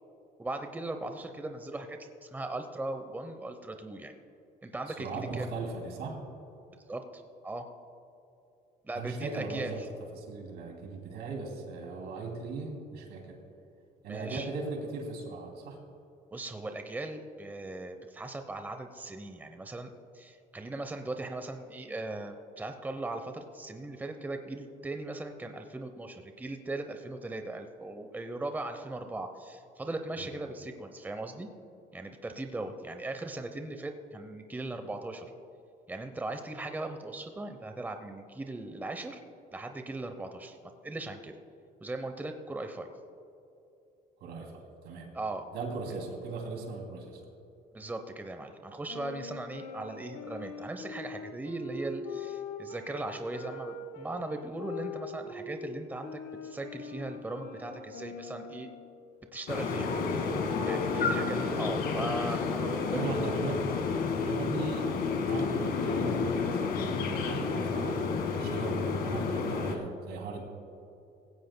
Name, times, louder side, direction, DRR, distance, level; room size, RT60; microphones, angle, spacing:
voice 1, 0.4-4.1 4.6-5.5 6.9-7.7 8.8-9.9 14.1-14.5 16.3-31.5 31.9-35.3 35.9-39.2 39.5-40.6 40.8-41.3 41.8-42.9 45.1-45.5 47.7-58.7 59.3-60.3 60.6-63.1, right 2 dB, 10° right, 6 dB, 0.8 m, -38 dB
voice 2, 4.9-6.2 8.9-9.8 10.2-13.4 14.0-15.8 30.2-30.3 44.2-45.2 45.5-47.2 61.0-61.2 62.9-63.7 64.2-68.0 68.4-70.4, right 4 dB, 75° right, 2 dB, 2.8 m, -38 dB
sound 1, 48.9-55.6 56.0-59.0, left 3 dB, 85° left, 1.3 m, -42 dB
sound 2, 59.5-69.7, left 5 dB, 70° left, 1.7 m, -30 dB
17.5 x 16.0 x 2.2 m, 2.8 s
cardioid pair, 110°, 17 cm